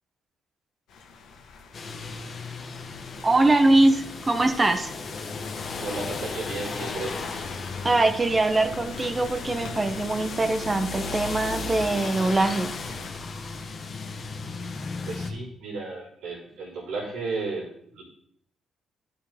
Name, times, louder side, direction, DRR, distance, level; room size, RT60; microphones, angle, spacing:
sound 1, 0.9-13.1, left 4 dB, 85° left, 1.5 m, -42 dB
sound 2, 1.7-15.3, left 4 dB, 50° left, 1.3 m, -36 dB
voice 1, 3.2-4.9 7.8-12.8, right 2 dB, 25° right, 9 dB, 1.0 m, -22 dB
voice 2, 5.8-7.5 15.0-17.7 17.9-18.0, right 3 dB, 90° right, -6 dB, 4.1 m, -34 dB
11.0 x 6.8 x 3.6 m, 0.69 s
cardioid pair, 90°, 0 cm